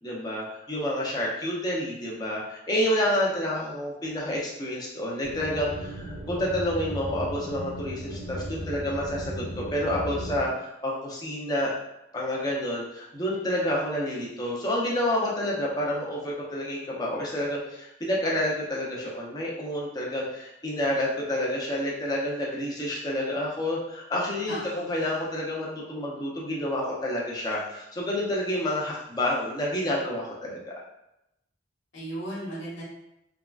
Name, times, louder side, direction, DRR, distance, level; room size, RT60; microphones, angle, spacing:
voice 1, 0.0-11.7 12.1-24.6 24.9-30.7, left 1 dB, 20° left, -5 dB, 0.6 m, -29 dB
sound 1, 5.2-10.4, equal, 80° right, 0.7 m, -36 dB
voice 2, 24.5-25.0 31.9-32.8, right 1 dB, 85° left, -6 dB, 1.3 m, -36 dB
3.6 x 2.2 x 2.3 m, 0.87 s
head